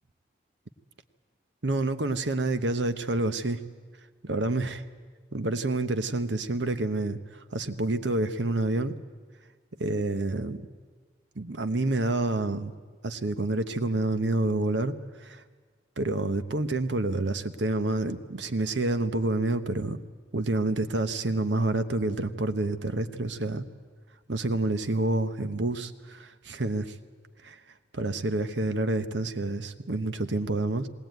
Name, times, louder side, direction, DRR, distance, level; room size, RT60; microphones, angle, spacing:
voice 1, 1.6-3.6 4.2-4.8 5.3-7.2 7.5-8.9 9.8-10.6 11.4-12.7 13.0-14.9 15.2-15.4 16.0-20.0 20.3-23.6 24.3-27.0 27.4-27.6 27.9-30.9, right 2 dB, 75° right, 10 dB, 1.0 m, -28 dB
20.0 x 18.0 x 9.2 m, 1.5 s
head